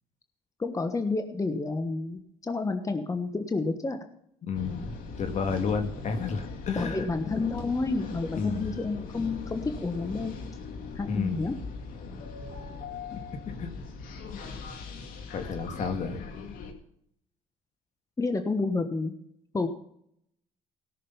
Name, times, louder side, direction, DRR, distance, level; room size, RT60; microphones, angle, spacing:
voice 1, 0.6-4.0 6.8-10.4 10.9-11.5 18.2-19.1 19.5-19.7, left 3 dB, 20° left, 7 dB, 1.3 m, -30 dB
voice 2, 4.4-7.1 8.3-8.7 11.1-11.5 13.1-13.2 13.6-13.7 15.3-16.2, left 5 dB, 55° left, 7 dB, 2.0 m, -31 dB
sound 1, 4.5-16.7, left 4 dB, 75° left, 2.0 m, -40 dB
17.5 x 6.6 x 5.6 m, 0.70 s
supercardioid pair, 80°, 14 cm